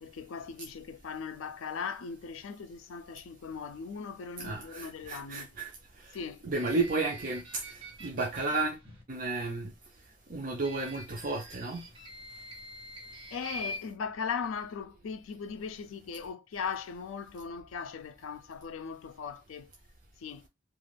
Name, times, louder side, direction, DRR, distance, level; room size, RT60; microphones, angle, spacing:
voice 1, 0.0-5.6 6.1-6.5 13.3-19.7 20.2-20.5, left 6 dB, 85° left, 0.4 m, -39 dB
voice 2, 4.4-5.7 6.0-6.1 6.4-8.8 9.1-9.7 10.3-11.8, right 3 dB, 40° right, 0.5 m, -33 dB
sound 1, 6.5-9.0 10.6-13.8, equal, 25° right, 1.0 m, -45 dB
2.4 x 2.3 x 3.3 m
head